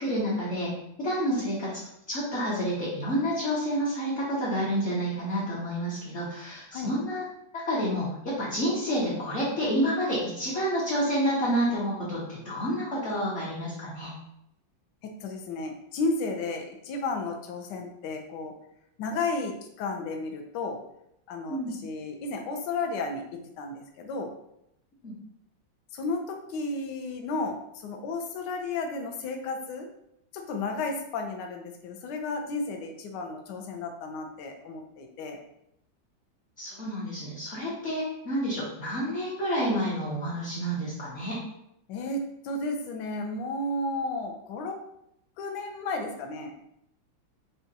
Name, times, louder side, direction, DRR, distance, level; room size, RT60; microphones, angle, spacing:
voice 1, 0.0-1.7 2.1-7.2 7.6-14.1 21.5-21.7 25.0-25.1 36.6-41.4, equal, 50° left, -8 dB, 0.9 m, -29 dB
voice 2, 15.0-18.5 19.0-20.8 21.3-24.3 25.9-29.9 30.3-35.4 41.9-44.8 45.4-46.7, left 3 dB, 70° left, 4 dB, 1.1 m, -33 dB
5.0 x 2.3 x 2.7 m, 0.79 s
omnidirectional pair, 2.2 m